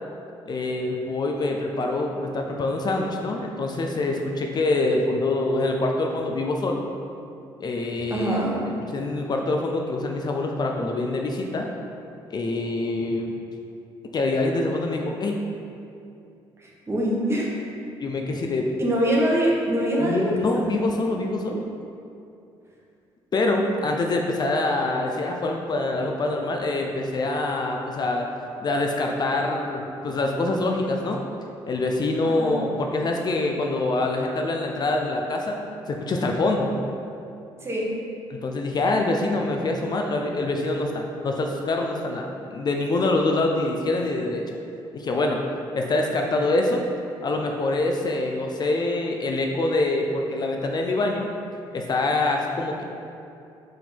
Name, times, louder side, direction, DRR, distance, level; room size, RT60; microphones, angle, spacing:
voice 1, 0.5-6.8 7.6-8.4 8.9-11.7 12.3-13.3 14.1-15.4 18.0-18.7 20.0-21.7 23.3-28.3 28.6-31.2 31.7-35.6 35.9-36.7 38.3-44.6 44.9-45.4 45.7-46.8 47.2-51.3 51.7-52.8, left 2 dB, 40° left, 2 dB, 0.6 m, -25 dB
voice 2, 8.1-8.6 16.6-17.5 18.8-20.6 32.2-32.6 37.6-37.9, equal, 25° right, -4 dB, 1.4 m, -24 dB
4.8 x 3.8 x 5.3 m, 2.6 s
supercardioid pair, 75°, 10 cm